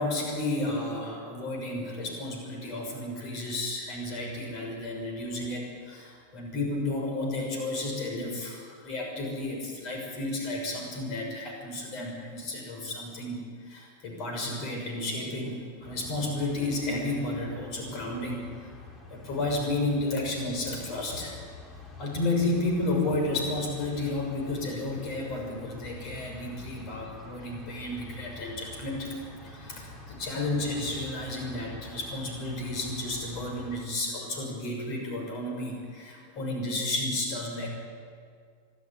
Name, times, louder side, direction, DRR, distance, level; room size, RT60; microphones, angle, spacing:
voice 1, 0.0-18.7 19.1-21.4 22.0-29.1 29.4-37.7, left 2 dB, 40° left, 1 dB, 6.2 m, -32 dB
sound 1, 15.8-33.9, left 2 dB, 20° left, 2.9 m, -47 dB
25.0 x 12.5 x 9.7 m, 2.1 s
figure-of-eight pair, 90°, 0 cm